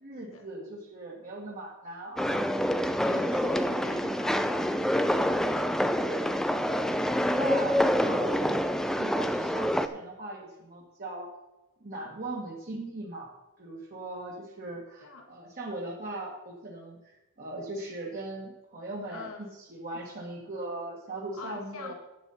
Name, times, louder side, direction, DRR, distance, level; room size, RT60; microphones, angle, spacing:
voice 1, 0.0-2.6 3.1-3.8 5.6-6.3 7.4-8.6 9.0-11.3 11.8-13.3 13.6-21.9, right 2 dB, 45° right, -3 dB, 1.8 m, -39 dB
sound 1, 2.2-9.9, equal, ahead, 0.4 m, -27 dB
voice 2, 3.0-5.3 14.7-15.3 19.1-19.5 19.9-20.2 21.4-21.9, left 3 dB, 70° left, 2 dB, 1.6 m, -45 dB
11.5 x 8.3 x 4.2 m, 1.0 s
head